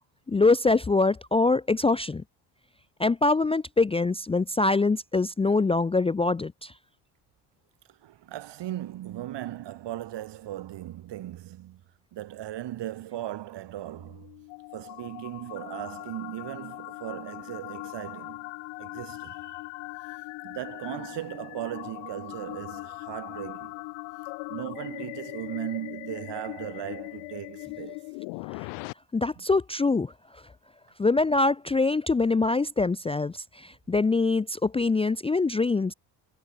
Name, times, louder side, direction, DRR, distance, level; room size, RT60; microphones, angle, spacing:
voice 1, 0.3-2.2 3.0-6.7 29.1-30.1 31.0-35.9, left 3 dB, 15° left, 0.5 m, -24 dB
voice 2, 7.9-11.8 12.1-14.3 14.7-18.5 18.8-19.6 20.4-23.8 24.5-28.0 29.4-29.5, right 13 dB, 65° right, 3.7 m, -37 dB
sound 1, 13.8-28.9, left 32 dB, 80° left, 3.3 m, -40 dB
supercardioid pair, 65°, 46 cm